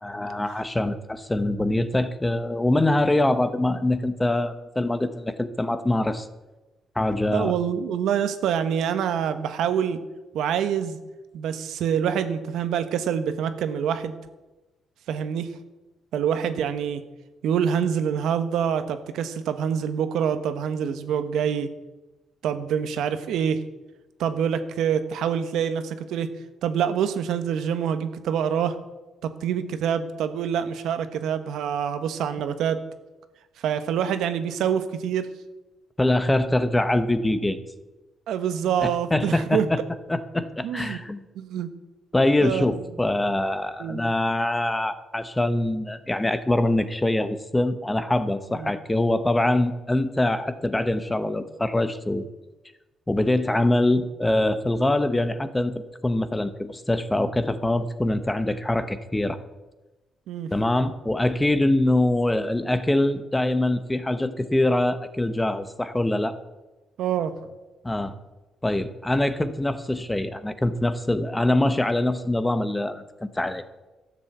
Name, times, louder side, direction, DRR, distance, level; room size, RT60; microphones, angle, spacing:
voice 1, 0.0-6.3 7.0-7.6 36.0-37.6 38.8-39.8 40.1-41.2 42.1-52.3 53.1-59.4 60.5-66.4 67.8-68.2 68.6-73.0 73.3-73.6, left 1 dB, 10° left, 11 dB, 0.8 m, -24 dB
voice 2, 7.3-10.0 10.3-11.0 11.3-14.2 15.1-15.5 16.1-17.0 17.4-21.7 22.4-23.6 24.2-26.3 26.6-28.8 29.2-32.8 33.6-35.3 38.3-39.7 40.6-41.0 41.3-41.7 42.4-42.7 43.8-44.0 48.6-48.7 60.3-60.5 67.0-67.3, right 8 dB, 80° right, 10 dB, 1.1 m, -26 dB
13.0 x 7.4 x 7.9 m, 1.1 s
cardioid pair, 135°, 0 cm